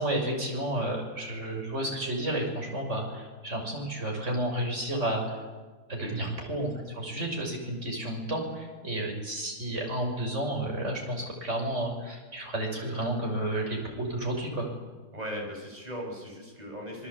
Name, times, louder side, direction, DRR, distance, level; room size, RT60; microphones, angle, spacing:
voice 1, 0.0-5.4 5.9-14.7, right 1 dB, 45° right, 1 dB, 6.6 m, -31 dB
voice 2, 5.9-6.4 15.1-17.1, equal, 25° right, 0 dB, 7.0 m, -38 dB
27.5 x 21.5 x 8.6 m, 1.3 s
omnidirectional pair, 1.7 m